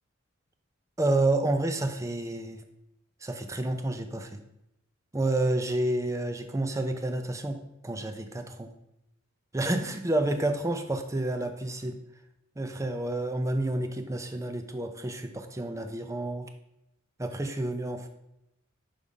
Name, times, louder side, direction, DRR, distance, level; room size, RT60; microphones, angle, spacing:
voice 1, 1.0-2.6 3.2-4.4 5.1-7.6 7.8-8.7 9.5-12.0 12.6-16.5 17.2-18.1, right 2 dB, 15° right, 7 dB, 0.5 m, -29 dB
5.5 x 5.4 x 4.9 m, 0.84 s
head